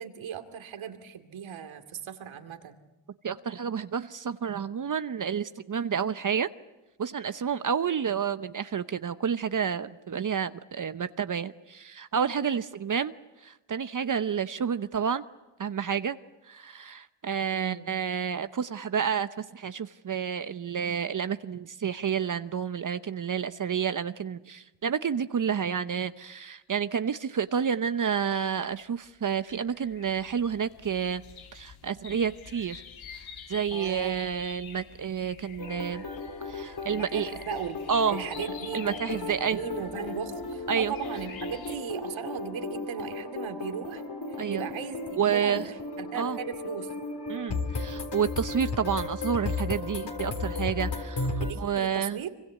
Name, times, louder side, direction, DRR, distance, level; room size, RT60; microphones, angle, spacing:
voice 1, 0.0-2.8 17.5-17.9 33.7-34.2 36.9-44.0 44.3-46.9 51.4-52.3, right 8 dB, 80° right, 7 dB, 2.5 m, -37 dB
voice 2, 3.2-6.5 7.0-13.1 13.4-15.2 15.6-16.2 16.5-31.2 31.5-32.8 33.1-36.0 36.4-37.3 37.9-38.2 38.7-39.6 40.7-40.9 44.4-44.6 45.2-45.6 46.2-46.4 47.3-52.2, right 7 dB, 40° right, 11 dB, 0.9 m, -30 dB
sound 1, 27.4-28.5 29.0-41.8, left 7 dB, 80° left, 2.7 m, -48 dB
sound 2, 35.6-51.5, left 3 dB, 55° left, 3.9 m, -35 dB
25.5 x 23.5 x 8.4 m, 1.0 s
cardioid pair, 85°, 47 cm